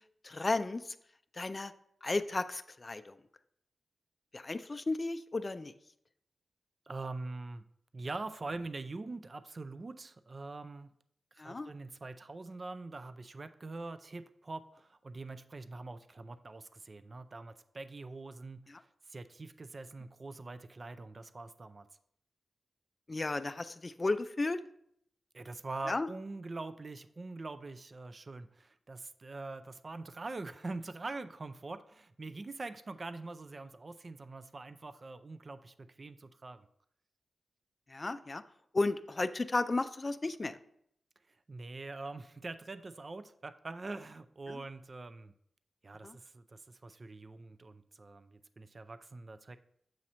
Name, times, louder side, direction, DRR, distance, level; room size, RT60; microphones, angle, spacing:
voice 1, 0.2-0.8 1.3-1.7 2.0-3.2 4.3-5.7 11.4-11.7 18.7-18.8 23.1-24.6 25.9-26.1 37.9-38.4 38.7-40.6 44.5-44.6 46.0-46.2, left 3 dB, 35° left, 11 dB, 0.3 m, -34 dB
voice 2, 6.9-7.7 7.9-10.9 11.3-18.8 19.1-21.9 25.3-36.7 41.5-45.3 45.8-49.6, right 3 dB, 45° right, 11 dB, 0.3 m, -44 dB
7.6 x 2.8 x 6.0 m, 0.72 s
cardioid pair, 70°, 0 cm